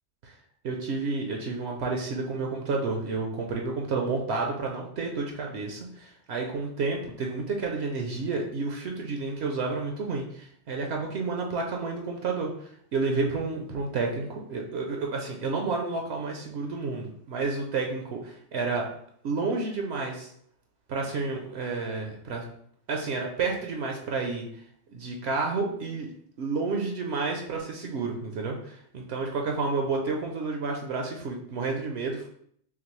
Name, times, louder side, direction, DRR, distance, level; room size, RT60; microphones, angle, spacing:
voice 1, 0.6-12.5 12.9-18.9 19.2-20.3 20.9-22.4 22.9-24.5 24.9-26.1 26.4-32.3, right 4 dB, 65° right, 1 dB, 0.8 m, -30 dB
5.7 x 2.0 x 3.0 m, 0.66 s
omnidirectional pair, 1.3 m